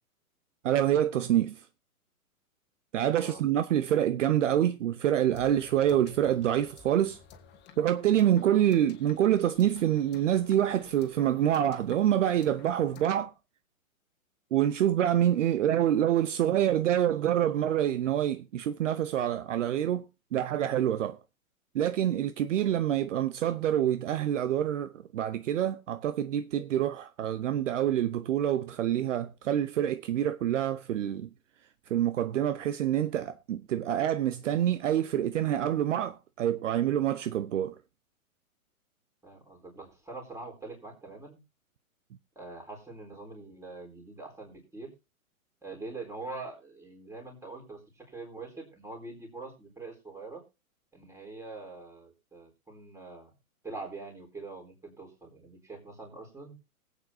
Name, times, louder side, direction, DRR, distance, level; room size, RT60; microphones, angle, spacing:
voice 1, 0.6-1.6 2.9-7.2 7.8-13.3 14.5-20.0 20.3-21.2 21.7-31.3 31.9-37.8, right 11 dB, 55° right, 0.9 m, -26 dB
sound 1, 5.3-13.1, left 7 dB, 25° left, 1.7 m, -52 dB
voice 2, 39.2-41.4 42.4-44.9 45.6-50.4 50.9-53.3 53.6-56.6, right 3 dB, 5° right, 3.9 m, -44 dB
20.5 x 8.3 x 2.7 m
hypercardioid pair, 120°, 43 cm